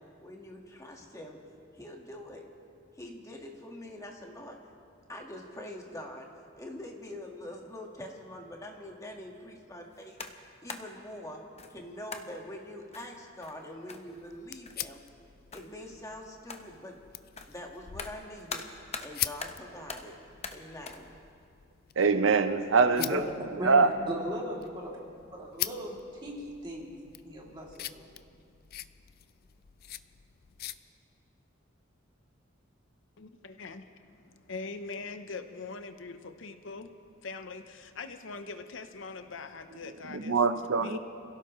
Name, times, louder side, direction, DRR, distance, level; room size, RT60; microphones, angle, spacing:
voice 1, 0.2-1.4 1.7-2.5 2.9-4.6 5.1-6.3 6.6-10.2 10.6-11.4 11.7-15.0 15.5-17.0 17.5-18.7 19.0-20.2 20.5-21.1, left 1 dB, 15° left, 0 dB, 1.6 m, -44 dB
sound 1, 9.9-11.0 11.6-11.8 12.1-12.4 12.9-14.4 14.7-15.0 15.5-15.9 16.5-16.8 17.4-19.1 19.4-20.2 20.4-21.1, left 4 dB, 35° left, 0.9 m, -43 dB
sound 2, 14.1-30.8, left 13 dB, 50° left, 0.4 m, -43 dB
voice 2, 22.0-23.3 23.5-23.9 40.1-41.0, right 4 dB, 80° right, 10 dB, 0.7 m, -24 dB
voice 3, 23.6-24.9 25.3-25.9 26.2-27.0 27.2-28.1, equal, 25° right, -3 dB, 2.7 m, -37 dB
voice 4, 33.2-36.9 37.2-40.4 40.7-41.0, left 4 dB, 70° left, 9 dB, 0.8 m, -42 dB
28.0 x 16.5 x 3.1 m, 2.3 s
head